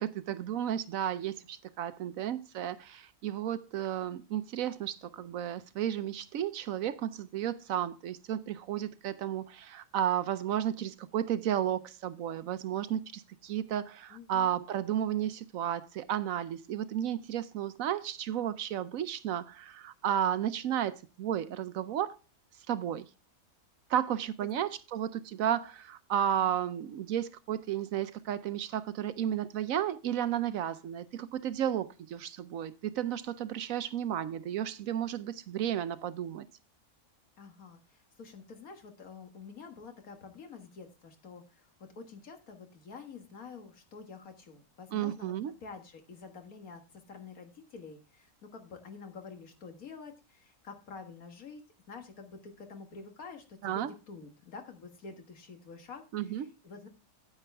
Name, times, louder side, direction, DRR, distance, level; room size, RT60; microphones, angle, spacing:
voice 1, 0.0-22.2 22.7-23.1 23.9-36.4 44.9-45.5 53.6-53.9 56.1-56.5, right 10 dB, 70° right, 1.0 m, -33 dB
voice 2, 14.1-14.6 24.4-24.7 26.1-26.6 37.4-41.7 42.0-45.3 45.6-51.6 51.9-56.9, left 5 dB, 70° left, 2.0 m, -48 dB
9.2 x 9.1 x 3.4 m
omnidirectional pair, 1.6 m